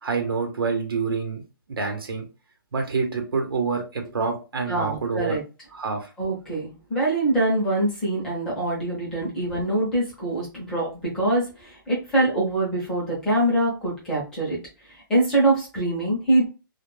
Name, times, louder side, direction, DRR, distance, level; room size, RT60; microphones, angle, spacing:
voice 1, 0.0-1.4 1.7-2.3 2.7-5.4 5.7-6.1, right 4 dB, 85° right, 3 dB, 0.8 m, -27 dB
voice 2, 4.7-5.4 6.2-14.6 15.1-16.5, right 2 dB, 5° left, -6 dB, 0.6 m, -24 dB
2.2 x 2.1 x 3.1 m, 0.31 s
hypercardioid pair, 170°, 12 cm